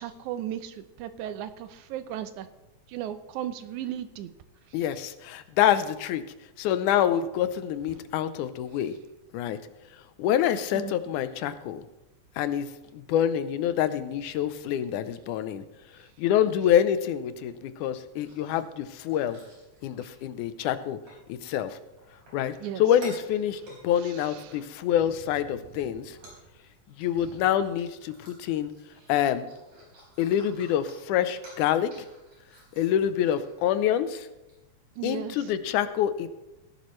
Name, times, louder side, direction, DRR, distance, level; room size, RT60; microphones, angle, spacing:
voice 1, 0.0-2.5 2.9-4.3 10.7-10.9 22.6-22.8 24.0-24.6 35.0-35.5, right 11 dB, 80° right, 12 dB, 2.1 m, -36 dB
voice 2, 4.7-6.2 6.6-9.0 9.3-9.6 9.9-11.9 12.4-19.4 19.8-21.0 21.3-21.8 22.3-26.2 26.9-28.7 29.1-29.5 30.2-31.9 32.8-34.3 35.0-36.3, left 10 dB, 85° left, 12 dB, 2.2 m, -26 dB
sound 1, 18.2-20.7 21.1-21.2 21.6-25.1 25.5-25.7 26.0-33.8 34.1-34.2 34.5-34.6, right 1 dB, 60° right, 5.4 m, -52 dB
17.0 x 11.0 x 3.2 m, 0.99 s
omnidirectional pair, 3.4 m